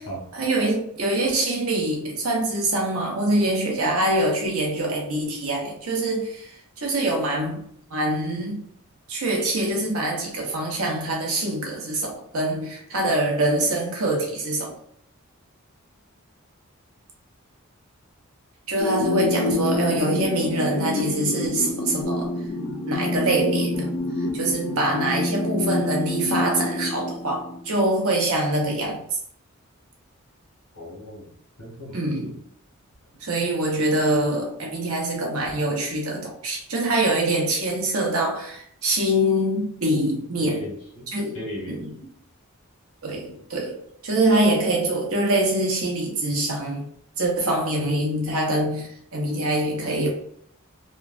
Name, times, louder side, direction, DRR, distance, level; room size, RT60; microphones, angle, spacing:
voice 1, 0.3-8.6 9.1-14.7 18.7-22.3 22.9-23.9 24.3-29.0 31.9-32.4 33.2-40.7 41.1-41.4 41.7-42.0 43.0-43.8 44.0-46.9 47.2-50.1, right 1 dB, 80° right, 0.9 m, -24 dB
sound 1, 18.8-27.8, left 2 dB, 60° left, 0.5 m, -27 dB
voice 2, 30.7-32.3 40.4-41.8, left 1 dB, 90° left, 1.2 m, -37 dB
3.1 x 2.2 x 2.4 m
head